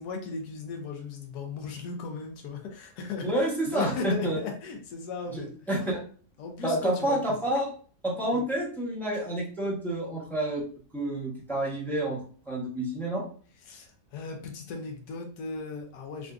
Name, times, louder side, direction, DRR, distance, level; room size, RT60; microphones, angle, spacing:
voice 1, 0.0-3.3 3.7-5.5 6.4-7.4 8.3-8.4 13.7-16.3, left 4 dB, 90° left, 3 dB, 1.2 m, -36 dB
voice 2, 3.2-4.4 5.3-6.0 6.6-7.7 8.0-10.6 10.9-13.2, right 1 dB, ahead, -5 dB, 0.6 m, -29 dB
3.7 x 2.5 x 2.3 m, 0.43 s
omnidirectional pair, 1.6 m